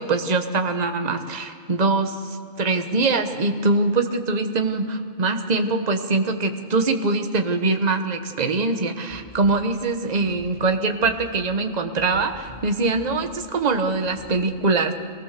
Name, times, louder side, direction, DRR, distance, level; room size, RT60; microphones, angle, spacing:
voice 1, 0.0-2.2 2.6-14.9, right 3 dB, 35° right, 6 dB, 1.2 m, -23 dB
sound 1, 9.1-9.6 10.1-10.7 11.0-11.5 12.0-12.7 12.9-13.4 13.9-14.4, equal, 75° left, 7.7 m, -45 dB
23.5 x 18.5 x 6.7 m, 2.3 s
omnidirectional pair, 1.4 m